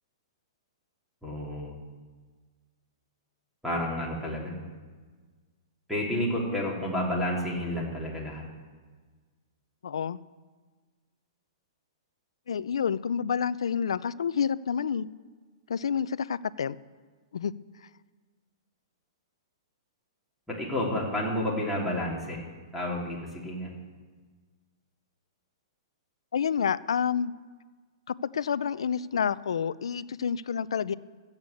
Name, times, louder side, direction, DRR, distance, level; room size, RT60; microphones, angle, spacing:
voice 1, 1.2-1.7 3.6-4.5 5.9-8.5 20.5-22.4 22.7-23.7, left 1 dB, ahead, -3 dB, 3.2 m, -30 dB
voice 2, 9.8-10.2 12.5-15.1 15.7-16.8 17.3-17.5 26.3-27.3 28.1-30.9, left 7 dB, 85° left, 18 dB, 0.5 m, -29 dB
14.0 x 8.1 x 8.3 m, 1.5 s
hypercardioid pair, 140°, 3 cm